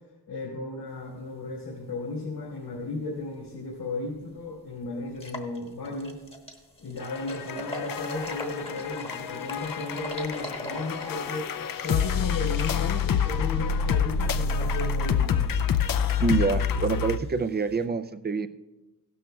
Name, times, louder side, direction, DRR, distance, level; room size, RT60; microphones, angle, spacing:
voice 1, 0.3-6.2 6.8-11.5 11.8-15.5, left 2 dB, 75° left, -5 dB, 3.1 m, -34 dB
sound 1, 3.8-3.9 4.4-4.5 5.1-17.8, left 1 dB, 15° left, 1.1 m, -43 dB
sound 2, 7.0-17.2, left 7 dB, 55° left, 0.5 m, -27 dB
voice 2, 16.2-18.5, right 4 dB, 25° right, 11 dB, 0.4 m, -26 dB
16.0 x 12.5 x 2.3 m, 1.1 s
wide cardioid pair, 155°, 41 cm